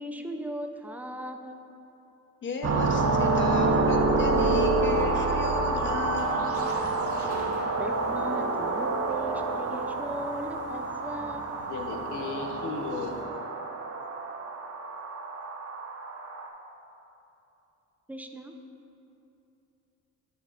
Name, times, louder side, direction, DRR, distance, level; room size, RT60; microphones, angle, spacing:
voice 1, 0.0-1.6 7.8-11.5 18.1-18.5, equal, 5° right, 5 dB, 0.4 m, -38 dB
voice 2, 2.4-6.6 7.0-7.3, left 3 dB, 40° left, 3 dB, 0.8 m, -34 dB
sound 1, 2.6-16.5, right 3 dB, 50° right, 0.8 m, -28 dB
sound 2, 2.8-13.2, right 1 dB, 90° right, 1.4 m, -47 dB
voice 3, 11.7-13.1, left 4 dB, 80° left, 3 dB, 0.8 m, -35 dB
9.7 x 5.5 x 2.4 m, 2.9 s
cardioid pair, 90°, 30 cm